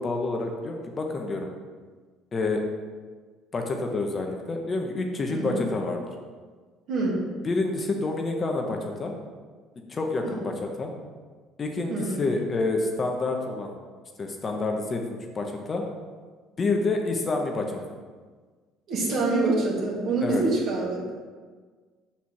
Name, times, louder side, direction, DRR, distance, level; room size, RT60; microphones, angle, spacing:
voice 1, 0.0-1.5 2.3-2.6 3.5-6.0 7.4-9.1 9.8-10.9 11.6-13.8 14.2-15.9 16.6-17.8 20.2-20.4, left 3 dB, 35° left, 3 dB, 0.9 m, -28 dB
voice 2, 5.3-5.6 6.9-7.2 10.2-10.4 11.9-12.2 18.9-21.2, right 3 dB, 60° right, -4 dB, 1.9 m, -26 dB
5.6 x 4.3 x 4.8 m, 1.5 s
hypercardioid pair, 65°, 0 cm